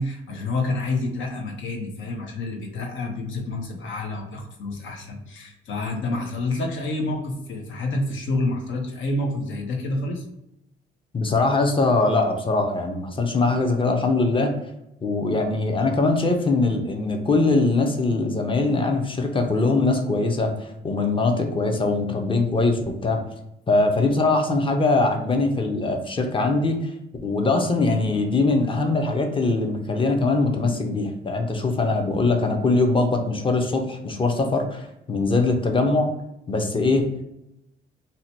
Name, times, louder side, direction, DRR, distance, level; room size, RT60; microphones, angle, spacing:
voice 1, 0.0-10.2, left 2 dB, 75° left, 2 dB, 0.8 m, -28 dB
voice 2, 11.1-14.5 15.0-23.2 23.7-26.9 27.2-36.1 36.5-37.2, left 3 dB, 25° left, 4 dB, 0.6 m, -22 dB
2.8 x 2.2 x 4.1 m, 0.85 s
cardioid pair, 90°, 20 cm